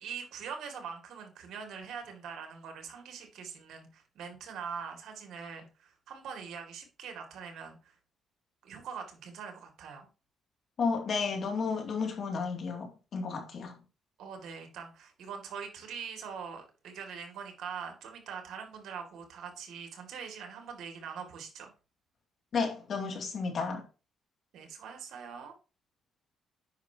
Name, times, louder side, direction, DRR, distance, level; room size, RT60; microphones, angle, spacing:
voice 1, 0.0-8.0 8.6-10.1 14.2-21.7 24.5-25.5, right 6 dB, 75° right, 2.2 m, -43 dB
voice 2, 10.8-12.9 13.1-13.7 22.5-23.8, left 5 dB, 55° left, 2.4 m, -32 dB
9.1 x 5.9 x 2.8 m
cardioid pair, 90°, 0 cm